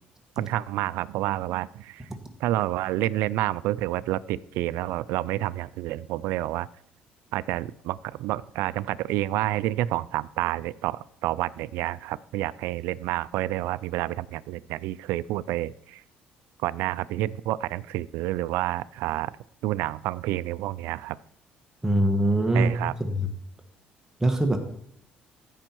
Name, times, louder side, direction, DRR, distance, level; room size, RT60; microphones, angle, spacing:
voice 1, 0.4-2.1 2.4-6.7 7.3-16.0 16.6-19.3 19.6-21.2 22.5-22.9, right 15 dB, 85° right, 17 dB, 0.3 m, -29 dB
voice 2, 21.8-22.7 23.0-23.3 24.2-24.6, right 1 dB, 15° right, 5 dB, 1.4 m, -22 dB
15.0 x 5.4 x 4.5 m, 0.70 s
cardioid pair, 100°, 4 cm